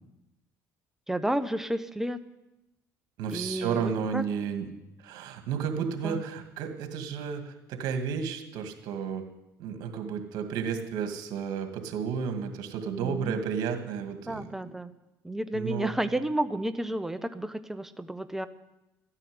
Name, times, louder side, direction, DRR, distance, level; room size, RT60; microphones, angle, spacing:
voice 1, 1.1-2.2 3.3-4.2 5.7-6.2 13.0-13.4 14.3-14.9 15.2-18.5, right 1 dB, 5° right, 10 dB, 1.0 m, -31 dB
voice 2, 3.2-4.7 5.0-9.2 9.6-14.5 15.5-16.0, right 7 dB, 70° right, 6 dB, 2.2 m, -32 dB
13.0 x 9.8 x 9.6 m, 0.96 s
supercardioid pair, 80°, 7 cm